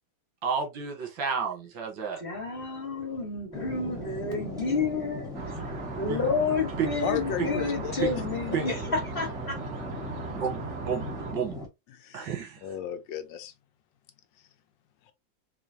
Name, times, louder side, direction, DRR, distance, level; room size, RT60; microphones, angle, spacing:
voice 1, 0.4-2.2 6.1-6.3 6.8-7.0 7.4-7.5 8.0-8.1 8.5-8.7 10.3-11.0 11.3-11.5 12.1-12.6, right 6 dB, 80° right, 1.7 m, -31 dB
voice 2, 2.2-5.3 6.0-9.6, left 4 dB, 35° left, 1.3 m, -30 dB
sound 1, 3.5-11.7, left 1 dB, ahead, 1.0 m, -38 dB
sound 2, 5.3-11.3, right 4 dB, 50° right, 1.0 m, -39 dB
voice 3, 7.0-8.2 11.9-12.3 12.6-13.5 15.1-15.2, left 8 dB, 80° left, 1.2 m, -34 dB
3.8 x 2.9 x 2.7 m
omnidirectional pair, 2.0 m